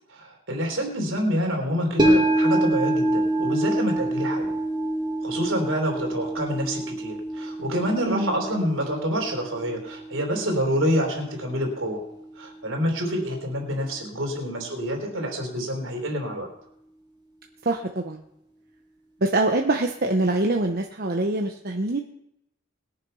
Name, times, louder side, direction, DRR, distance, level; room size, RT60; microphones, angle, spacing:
voice 1, 0.1-4.5 5.2-12.0 12.4-16.5, equal, 70° right, 2 dB, 3.9 m, -27 dB
sound 1, 2.0-12.4 12.7-12.8, right 1 dB, 20° right, 2.3 m, -26 dB
voice 2, 17.6-18.2 19.2-22.0, right 2 dB, 50° right, 3 dB, 1.0 m, -24 dB
21.0 x 7.1 x 5.6 m, 0.79 s
head